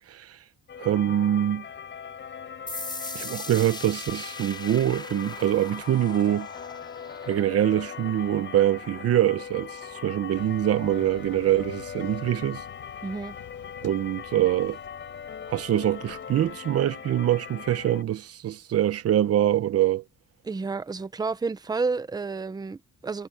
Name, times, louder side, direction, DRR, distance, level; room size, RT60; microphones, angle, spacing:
sound 1, 0.7-18.0, left 7 dB, 40° left, 5.5 m, -40 dB
voice 1, 0.8-1.6 3.1-6.5 7.2-12.6 13.8-14.8 15.5-20.0, right 12 dB, 55° right, 0.9 m, -24 dB
sound 2, 2.7-10.0, left 3 dB, 15° left, 5.4 m, -41 dB
sound 3, 10.3-16.6, left 12 dB, 80° left, 7.7 m, -50 dB
voice 2, 13.0-13.3 20.4-23.3, right 4 dB, 15° right, 0.7 m, -30 dB
cardioid pair, 175°, 30 cm